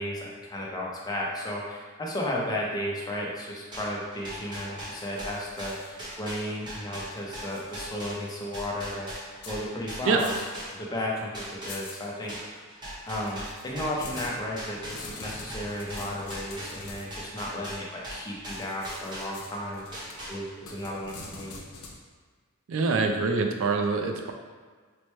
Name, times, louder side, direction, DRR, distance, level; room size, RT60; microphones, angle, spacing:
voice 1, 0.0-10.3 10.7-12.6 13.1-21.6, left 1 dB, 20° left, -3 dB, 0.6 m, -34 dB
sound 1, 3.7-11.0 11.3-19.6 19.9-20.7, equal, 20° right, 0.8 m, -40 dB
sound 2, 5.0-6.8 7.0-7.9 8.2-8.3 9.4-9.6 10.2-10.7 11.0-11.1 11.7-12.4 13.1-17.2 18.5-22.0, left 3 dB, 85° left, 0.5 m, -45 dB
voice 2, 22.7-24.3, right 4 dB, 65° right, 4 dB, 0.4 m, -25 dB
4.3 x 2.1 x 3.1 m, 1.5 s
head